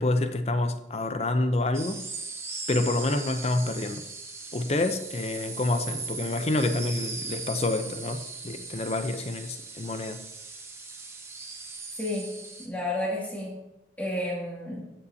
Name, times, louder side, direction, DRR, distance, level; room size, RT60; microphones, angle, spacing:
voice 1, 0.0-2.0 2.7-4.0 4.5-10.2, left 2 dB, 35° left, 0.7 m, -28 dB
sound 1, 1.7-12.7, right 4 dB, 15° right, 1.0 m, -39 dB
voice 2, 12.0-13.6 14.0-14.9, left 1 dB, 10° left, 2.3 m, -32 dB
15.0 x 6.9 x 2.8 m
head